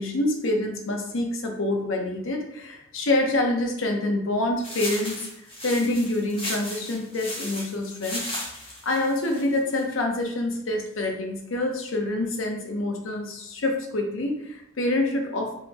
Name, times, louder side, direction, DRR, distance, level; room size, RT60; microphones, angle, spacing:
voice 1, 0.0-5.2 5.6-8.2 8.8-15.5, left 2 dB, 80° left, 2 dB, 0.7 m, -26 dB
sound 1, 4.6-9.8, left 1 dB, 30° left, 1.3 m, -35 dB
3.6 x 3.1 x 2.9 m, 0.83 s
head